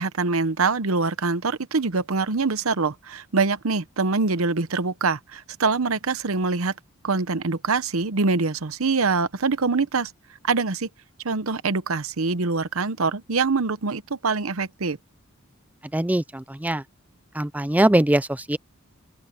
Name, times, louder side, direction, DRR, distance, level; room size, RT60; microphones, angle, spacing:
voice 1, 0.0-6.7 7.0-10.1 10.4-10.9 11.2-15.0, right 4 dB, 80° right, 0.9 m, -24 dB
voice 2, 15.9-16.8 17.3-18.6, right 1 dB, 5° right, 0.5 m, -22 dB
open air
head